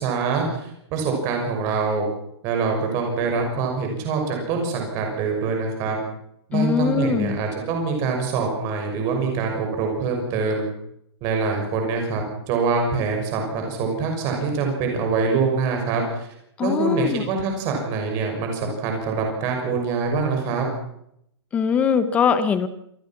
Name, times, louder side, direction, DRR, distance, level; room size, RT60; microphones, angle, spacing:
voice 1, 0.0-2.1 2.4-6.0 6.5-10.7 11.2-16.3 16.6-20.7, right 4 dB, 20° right, 2 dB, 6.3 m, -24 dB
voice 2, 6.5-7.3 16.6-17.2 21.5-22.7, left 6 dB, 10° left, 12 dB, 0.9 m, -21 dB
27.0 x 20.0 x 6.0 m, 0.74 s
hypercardioid pair, 175°, 14 cm